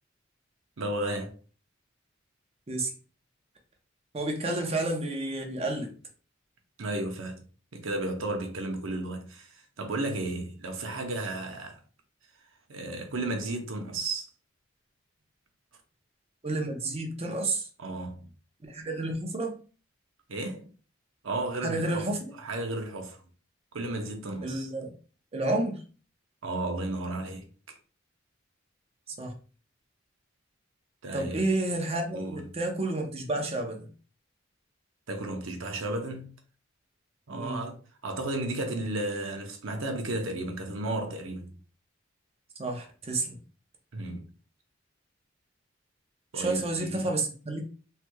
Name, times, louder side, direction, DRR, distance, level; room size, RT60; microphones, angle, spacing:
voice 1, 0.8-1.3 6.8-7.4 7.7-11.8 12.7-14.3 17.8-18.3 20.3-20.7 21.2-22.1 22.4-23.2 23.7-24.7 26.4-27.4 31.0-31.4 32.1-32.4 35.1-36.3 37.3-37.8 38.0-41.6 43.9-44.2 46.3-47.1, right 2 dB, 85° right, 0.7 m, -33 dB
voice 2, 4.1-5.9 16.4-17.7 18.7-19.6 21.6-22.3 24.4-24.9 25.3-25.8 29.1-29.3 31.1-33.9 37.3-37.6 42.6-43.4 46.3-47.6, right 2 dB, 30° right, 0.7 m, -30 dB
3.3 x 3.0 x 2.2 m
head